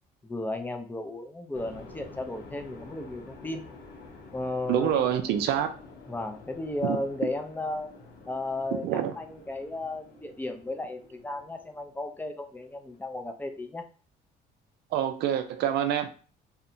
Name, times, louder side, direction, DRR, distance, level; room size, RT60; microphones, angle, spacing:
voice 1, 0.2-3.7 4.3-5.2 6.1-7.9 8.3-13.8, left 2 dB, 10° left, 6 dB, 0.3 m, -34 dB
sound 1, 1.5-13.0, left 3 dB, 85° left, 0.8 m, -49 dB
voice 2, 4.7-5.7 6.8-7.0 8.8-9.1 14.9-16.1, right 10 dB, 75° right, 8 dB, 0.4 m, -26 dB
2.7 x 2.1 x 2.6 m, 0.38 s
cardioid pair, 110°, 17 cm